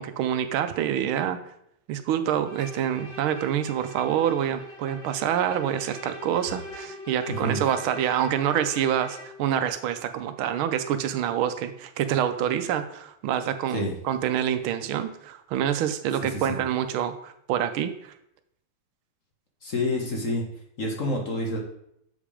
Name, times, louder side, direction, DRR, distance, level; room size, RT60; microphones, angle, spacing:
voice 1, 0.0-1.4 1.9-18.1, right 10 dB, 80° right, 10 dB, 1.4 m, -27 dB
Bowed string instrument, 2.5-9.4, left 2 dB, 25° left, 2.9 m, -42 dB
voice 2, 7.3-7.6 13.7-13.9 16.2-16.6 19.6-20.5 20.8-21.6, left 1 dB, 45° left, 0 dB, 1.4 m, -28 dB
7.3 x 5.2 x 4.9 m, 0.74 s
omnidirectional pair, 2.3 m